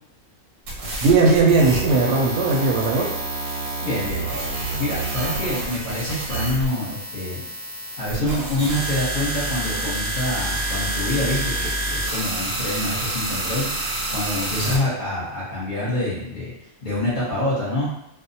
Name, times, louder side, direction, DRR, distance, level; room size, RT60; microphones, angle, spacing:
sound 1, 0.7-14.8, right 2 dB, 90° right, 1.2 m, -28 dB
voice 1, 1.0-3.1 14.6-14.8, right 3 dB, 65° right, -1 dB, 0.8 m, -18 dB
voice 2, 3.8-7.4 8.0-16.5 16.8-17.9, left 1 dB, 40° left, -8 dB, 0.9 m, -26 dB
2.4 x 2.0 x 2.7 m, 0.76 s
omnidirectional pair, 1.4 m